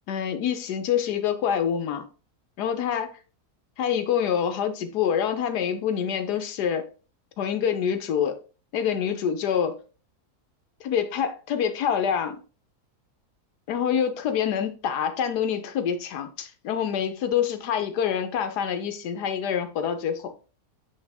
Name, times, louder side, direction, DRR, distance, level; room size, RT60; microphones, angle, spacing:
voice 1, 0.1-2.1 2.6-3.1 3.8-6.9 7.4-8.4 8.7-9.8 10.8-12.4 13.7-20.3, left 8 dB, 85° left, 1.4 m, -26 dB
8.7 x 3.4 x 3.5 m
omnidirectional pair, 1.7 m